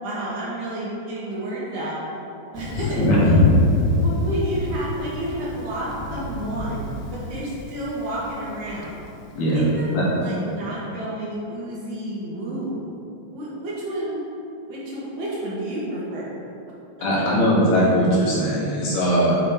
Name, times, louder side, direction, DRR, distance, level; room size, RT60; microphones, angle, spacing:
voice 1, 0.0-2.0 2.5-3.4 4.0-6.8 7.1-9.0 9.5-9.9 10.2-12.8 13.3-14.2 14.7-16.3, right 1 dB, 70° right, -6 dB, 2.2 m, -30 dB
Thunder, 2.5-9.4, left 2 dB, 90° left, 2.3 m, -25 dB
voice 2, 3.0-3.4 9.4-9.7 9.9-10.0 17.0-19.4, equal, 70° left, -6 dB, 2.1 m, -19 dB
6.8 x 3.4 x 4.4 m, 2.8 s
omnidirectional pair, 3.8 m